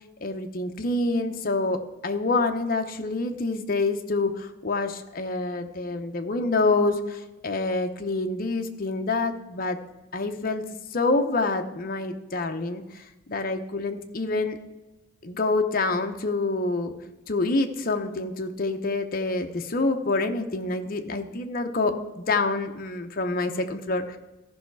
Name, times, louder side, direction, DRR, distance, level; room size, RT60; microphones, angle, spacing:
voice 1, 0.2-7.0 7.4-9.8 10.1-10.6 10.9-12.8 13.3-14.6 15.2-16.9 17.3-24.0, left 3 dB, 45° left, 5 dB, 0.8 m, -26 dB
14.0 x 5.6 x 4.7 m, 1.1 s
head